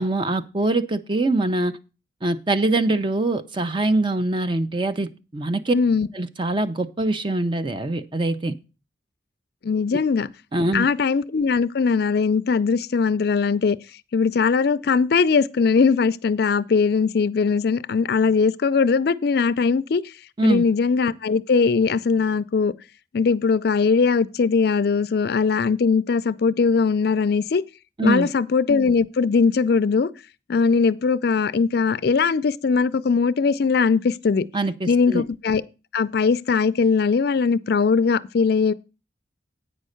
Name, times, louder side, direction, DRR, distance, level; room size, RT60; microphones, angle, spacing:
voice 1, 0.0-1.8 2.2-5.8 6.1-8.6 10.5-10.9 20.4-20.6 28.0-28.3 34.5-35.2, right 2 dB, 25° right, 0.6 m, -23 dB
voice 2, 5.7-6.1 9.6-10.3 10.7-13.8 14.1-20.0 20.4-22.7 23.1-27.6 28.0-30.1 30.5-34.5 34.9-35.6 35.9-38.7, left 5 dB, 60° left, 0.4 m, -20 dB
8.9 x 5.4 x 6.4 m
head